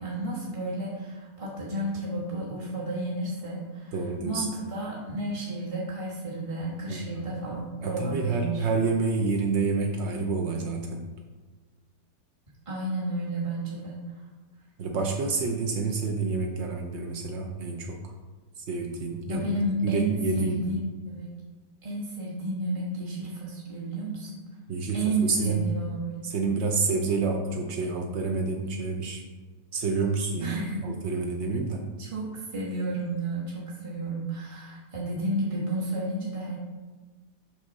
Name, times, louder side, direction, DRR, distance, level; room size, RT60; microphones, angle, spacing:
voice 1, 0.0-4.0 4.2-8.6 12.7-14.0 19.3-20.8 21.1-21.3 21.8-24.4 24.9-26.3 30.4-30.9 31.7-36.6, right 2 dB, 20° right, -6 dB, 1.0 m, -32 dB
voice 2, 3.9-4.5 6.9-7.3 7.8-11.1 14.8-18.1 18.6-19.5 19.8-20.6 24.7-25.6 26.2-29.2 29.7-31.8, right 4 dB, 75° right, 2 dB, 0.6 m, -28 dB
6.0 x 5.7 x 4.0 m, 1.3 s
omnidirectional pair, 2.0 m